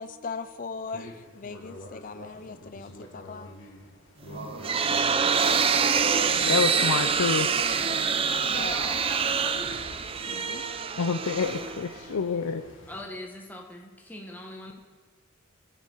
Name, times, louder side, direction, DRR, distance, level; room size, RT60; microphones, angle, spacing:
voice 1, 0.0-3.5 7.8-8.9 10.3-10.7, left 4 dB, 40° left, 10 dB, 0.5 m, -39 dB
sound 1, 0.8-13.0, left 1 dB, 60° left, 1.7 m, -48 dB
sound 2, 4.3-12.1, right 6 dB, 25° right, 0.3 m, -26 dB
voice 2, 4.3-6.8, right 2 dB, 55° right, 0 dB, 2.2 m, -37 dB
voice 3, 6.5-7.5 11.0-12.6, left 5 dB, 85° left, 7 dB, 0.5 m, -27 dB
voice 4, 8.5-9.7 12.9-14.7, left 1 dB, 10° left, 0 dB, 1.2 m, -40 dB
18.0 x 5.9 x 4.5 m, 1.5 s
head